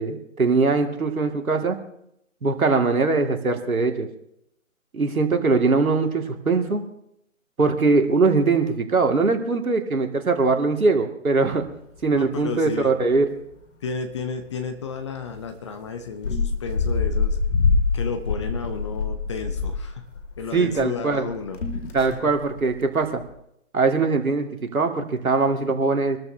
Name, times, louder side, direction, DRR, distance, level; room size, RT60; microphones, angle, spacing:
voice 1, 0.0-1.8 2.4-4.1 4.9-6.8 7.6-11.6 12.0-13.3 20.5-21.3 21.9-23.2 23.7-26.2, right 4 dB, 80° right, 4 dB, 2.4 m, -21 dB
sound 1, 11.4-12.1 12.4-12.5 12.8-13.4 13.9-14.1 14.5-14.6 15.3-15.5 16.1-20.9 21.1-22.8 23.1-23.3, left 4 dB, 60° left, 2.6 m, -25 dB
voice 2, 12.1-12.9 13.8-17.4 17.9-20.1 20.4-21.6 22.2-22.3, left 5 dB, 20° left, 7 dB, 0.8 m, -32 dB
25.5 x 13.5 x 2.8 m, 0.76 s
figure-of-eight pair, 150°, 42 cm